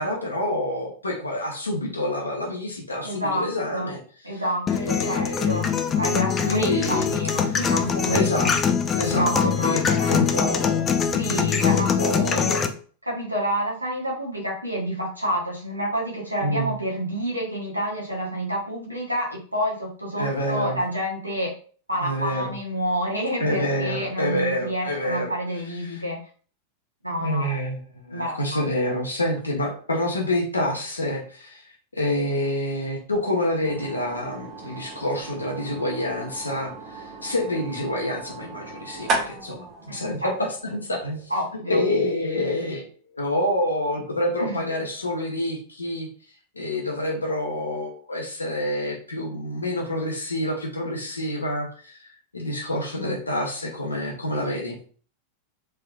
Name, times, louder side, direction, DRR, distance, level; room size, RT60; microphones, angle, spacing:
voice 1, 0.0-4.0 4.3-4.4 4.7-5.8 6.5-7.1 8.1-11.0 11.3-12.7 16.4-16.7 20.2-20.8 22.0-22.5 23.4-25.3 25.8-26.0 27.2-27.8 28.0-41.3 41.7-46.1 46.5-54.8, left 1 dB, 80° left, -1 dB, 0.8 m, -28 dB
voice 2, 3.0-3.9 4.2-8.5 9.1-10.5 11.1-12.4 13.0-21.6 21.9-26.2 27.0-27.5 28.1-28.7 39.9-40.3 41.3-41.8 44.4-44.6 52.9-53.1, equal, 85° right, -3 dB, 1.0 m, -29 dB
sound 1, 4.7-12.7, left 7 dB, 25° left, 0.4 m, -23 dB
sound 2, 33.6-41.4, right 3 dB, 35° right, 0.8 m, -35 dB
3.5 x 3.2 x 2.3 m, 0.42 s
figure-of-eight pair, 90°, 0 cm